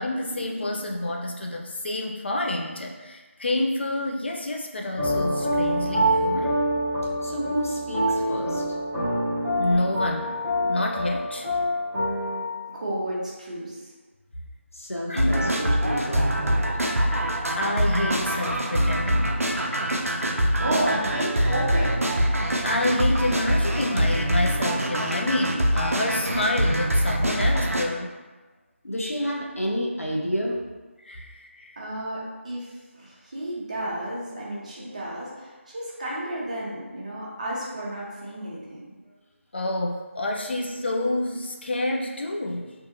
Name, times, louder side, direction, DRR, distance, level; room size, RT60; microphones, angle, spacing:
voice 1, 0.0-6.6 9.6-11.5 15.1-15.5 17.5-19.4 22.6-28.1 31.0-31.8 39.5-42.7, left 1 dB, 50° left, 0 dB, 0.3 m, -28 dB
sound 1, 5.0-12.4, equal, 10° left, 0.8 m, -26 dB
voice 2, 7.2-8.6 14.7-16.6 20.5-20.8 28.8-30.6, equal, 90° left, -2 dB, 0.7 m, -30 dB
voice 3, 12.7-13.9 20.6-22.0 31.8-38.9, right 1 dB, 30° right, -5 dB, 0.6 m, -32 dB
sound 2, 15.2-27.9, equal, 90° right, 0.4 m, -24 dB
2.6 x 2.4 x 2.6 m, 1.3 s
figure-of-eight pair, 160°, 7 cm